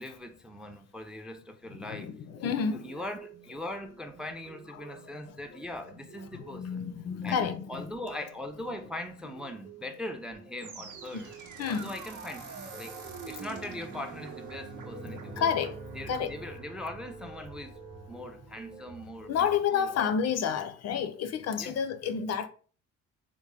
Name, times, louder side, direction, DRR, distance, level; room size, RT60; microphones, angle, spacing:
voice 1, 0.0-2.1 2.7-6.9 7.2-11.3 11.7-15.5 16.0-17.8 18.1-20.1 21.6-21.8, left 1 dB, 5° right, 0.3 m, -41 dB
voice 2, 1.8-3.0 4.7-5.0 5.3-5.4 6.3-7.9 11.1-11.2 11.6-11.9 14.9-15.7 16.1-16.3 19.3-22.5, left 7 dB, 60° left, 0.4 m, -30 dB
sound 1, 2.3-19.6, right 4 dB, 30° right, 0.8 m, -52 dB
sound 2, 10.6-19.7, right 4 dB, 75° right, 0.7 m, -45 dB
3.5 x 2.1 x 3.2 m
cardioid pair, 90°, 30 cm